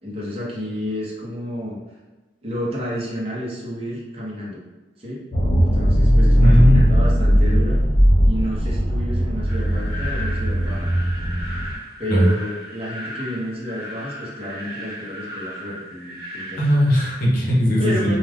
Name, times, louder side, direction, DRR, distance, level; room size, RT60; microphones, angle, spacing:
voice 1, 0.0-1.8 2.4-4.6 5.0-5.2 5.6-7.8 8.2-10.9 12.0-16.7 17.8-18.2, equal, 35° right, -5 dB, 0.8 m, -30 dB
sound 1, 5.3-11.8, equal, 80° left, 0.7 m, -18 dB
voice 2, 6.4-7.0 12.1-12.3 16.6-18.2, equal, 50° left, -5 dB, 0.8 m, -18 dB
sound 2, 9.5-17.2, left 1 dB, 60° right, 1.0 m, -36 dB
2.3 x 2.3 x 3.4 m, 1.2 s
head